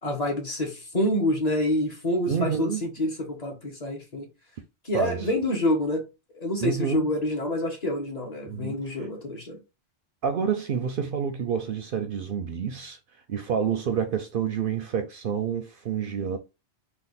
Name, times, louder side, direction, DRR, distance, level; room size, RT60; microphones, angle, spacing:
voice 1, 0.0-4.3 4.8-6.0 6.3-9.6, left 1 dB, 40° left, 1.1 m, -27 dB
voice 2, 2.3-2.8 4.9-5.3 6.6-7.1 8.5-9.0 10.2-13.0 13.3-16.4, right 7 dB, 60° right, 0.6 m, -28 dB
3.4 x 2.4 x 4.0 m
omnidirectional pair, 1.1 m